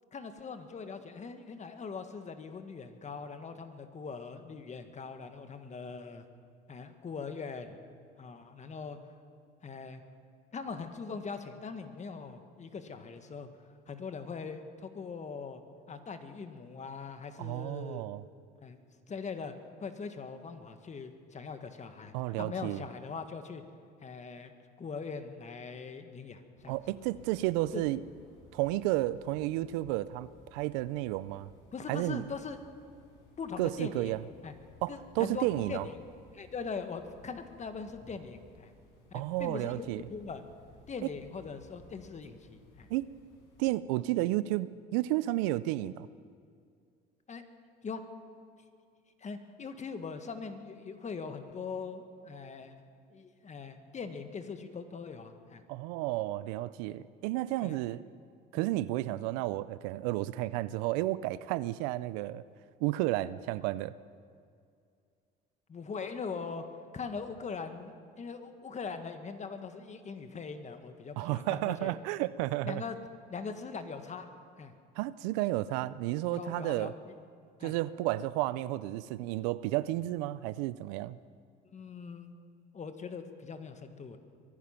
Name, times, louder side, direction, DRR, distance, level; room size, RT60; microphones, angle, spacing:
voice 1, 0.1-6.2 6.7-7.8 8.2-9.0 9.6-10.0 10.5-13.5 13.9-15.6 15.9-18.0 18.6-18.8 19.1-19.5 19.8-23.6 24.0-24.5 24.8-26.8 27.7-27.8 31.7-32.6 33.4-34.1 34.4-34.5 34.9-36.0 36.3-38.7 39.1-40.4 40.9-42.9 47.3-47.4 47.8-48.0 49.2-52.7 53.1-55.6 56.9-57.0 57.6-57.8 58.5-58.7 65.7-66.6 66.9-71.9 72.6-73.0 73.3-74.3 74.6-74.7 76.3-77.1 77.6-77.8 81.7-82.3 82.7-84.2, left 5 dB, 35° left, 8 dB, 1.6 m, -41 dB
voice 2, 17.4-18.2 22.1-22.8 26.7-28.0 28.5-31.5 31.9-32.2 33.6-34.2 34.8-35.9 39.1-40.0 41.0-41.1 42.9-43.1 43.6-46.1 55.7-58.1 58.5-62.4 62.8-63.9 71.2-72.8 75.0-76.9 77.6-81.2, right 16 dB, 85° right, 17 dB, 0.5 m, -32 dB
sound 1, 26.6-43.7, left 2 dB, 75° left, 5.6 m, -58 dB
23.0 x 10.5 x 5.8 m, 2.3 s
supercardioid pair, 85°, 21 cm